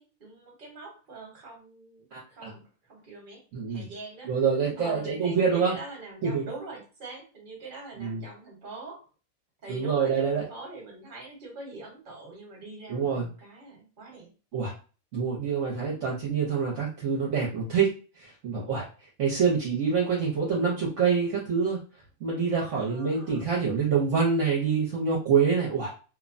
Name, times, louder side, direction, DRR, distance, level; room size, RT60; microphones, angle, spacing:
voice 1, 0.0-4.3 4.8-9.1 9.6-14.3 22.7-23.5, right 2 dB, 40° right, -1 dB, 1.1 m, -44 dB
voice 2, 2.1-2.5 3.5-3.9 4.2-5.8 6.2-6.5 8.0-8.2 9.7-10.5 12.9-13.3 14.5-14.7 15.1-18.9 19.2-21.8 22.2-25.9, right 6 dB, 65° right, -4 dB, 1.0 m, -26 dB
2.9 x 2.1 x 2.5 m, 0.35 s
omnidirectional pair, 1.5 m